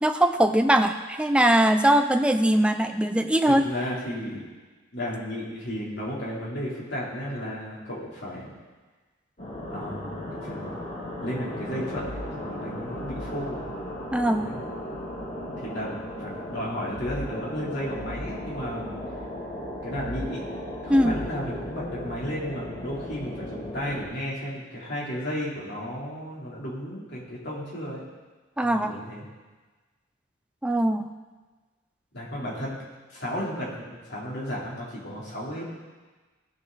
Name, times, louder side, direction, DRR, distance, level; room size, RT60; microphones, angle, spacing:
voice 1, 0.0-3.6 14.1-14.5 20.9-21.1 28.6-28.9 30.6-31.1, right 1 dB, 5° right, 7 dB, 0.5 m, -21 dB
voice 2, 3.5-4.5 4.9-8.5 9.7-10.7 11.2-13.6 14.3-14.7 15.6-18.9 19.8-20.4 20.8-28.0 28.6-29.3 32.1-32.8 33.1-35.6, equal, 55° left, -6 dB, 3.4 m, -33 dB
sound 1, 9.4-24.0, left 1 dB, 40° left, 3.0 m, -36 dB
17.0 x 6.5 x 4.1 m, 1.3 s
head